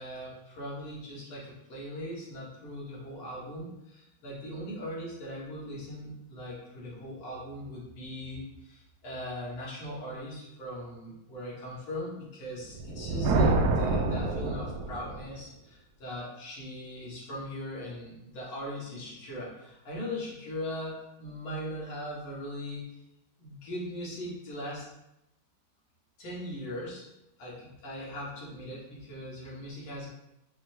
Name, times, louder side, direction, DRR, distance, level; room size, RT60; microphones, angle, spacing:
voice 1, 0.0-23.0 23.4-24.9 26.2-27.1 27.4-30.1, left 1 dB, 80° left, -6 dB, 2.3 m, -40 dB
Thunder, 12.6-15.3, right 2 dB, 80° right, 0.9 m, -27 dB
5.5 x 2.2 x 4.3 m, 0.89 s
omnidirectional pair, 2.2 m